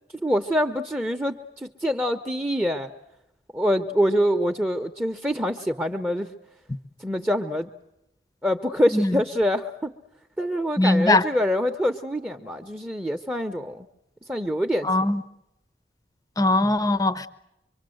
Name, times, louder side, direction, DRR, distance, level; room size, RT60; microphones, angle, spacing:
voice 1, 0.2-2.9 3.5-6.3 7.0-7.7 8.4-9.9 10.4-13.9 14.3-14.9, equal, 10° right, 0.9 m, -25 dB
voice 2, 10.8-11.2 14.8-15.2 16.4-17.3, left 2 dB, 20° left, 0.9 m, -20 dB
25.0 x 24.5 x 7.8 m
head